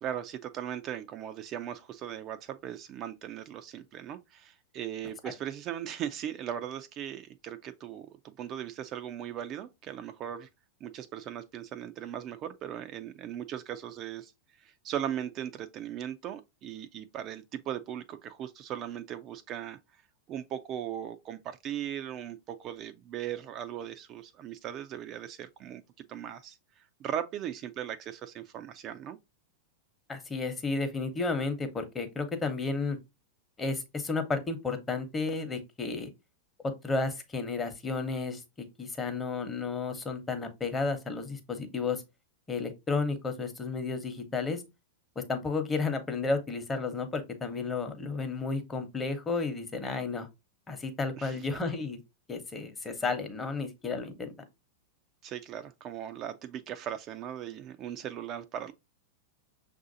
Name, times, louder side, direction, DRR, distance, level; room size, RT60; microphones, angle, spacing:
voice 1, 0.0-10.5 10.8-14.3 14.6-19.8 20.3-29.2 51.2-51.4 55.2-58.7, right 10 dB, 40° right, 0.4 m, -38 dB
voice 2, 30.1-33.0 33.6-36.1 36.6-42.0 42.5-44.6 45.3-50.3 50.7-52.0 52.3-54.3, left 4 dB, 20° left, 0.9 m, -32 dB
6.0 x 2.5 x 2.6 m
hypercardioid pair, 100°, 0 cm